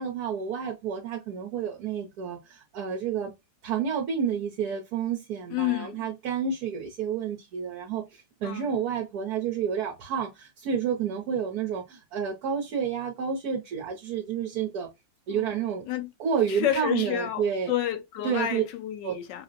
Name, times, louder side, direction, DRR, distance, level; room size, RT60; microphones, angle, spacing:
voice 1, 0.0-3.3 3.6-14.9 15.3-15.8 16.2-17.7 18.2-18.6 19.0-19.1, right 7 dB, 60° right, 1.1 m, -30 dB
voice 2, 5.5-6.1 8.4-8.8 15.3-15.6 15.9-16.1 16.5-19.4, left 12 dB, 70° left, 1.2 m, -30 dB
5.6 x 2.1 x 2.5 m
omnidirectional pair, 2.1 m